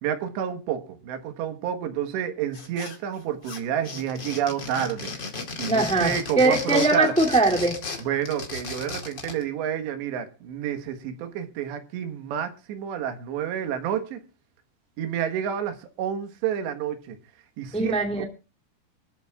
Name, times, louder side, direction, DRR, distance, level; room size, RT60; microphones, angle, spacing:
voice 1, 0.0-5.1 5.6-7.1 8.0-14.2 15.0-17.2 17.6-18.3, right 9 dB, 90° right, 3.7 m, -29 dB
sound 1, 2.5-3.2 3.4-9.4, left 4 dB, 35° left, 2.1 m, -35 dB
voice 2, 5.7-7.8 17.7-18.2, right 2 dB, 5° left, 1.3 m, -21 dB
25.0 x 13.5 x 2.4 m
omnidirectional pair, 4.8 m